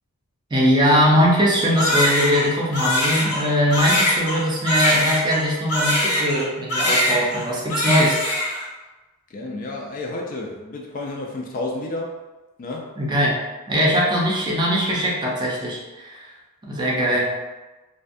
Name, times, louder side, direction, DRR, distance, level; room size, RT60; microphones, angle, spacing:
voice 1, 0.5-8.2 13.0-13.4 13.7-16.3 16.6-17.3, equal, 20° right, -4 dB, 0.5 m, -21 dB
Crying sobbing, 1.8-6.4 6.7-7.4 7.7-8.6, left 1 dB, 85° left, 1.0 m, -22 dB
voice 2, 9.3-12.2 12.6-13.0 17.0-17.2, left 2 dB, 40° left, 0 dB, 0.3 m, -31 dB
2.5 x 2.1 x 2.5 m, 1.1 s
head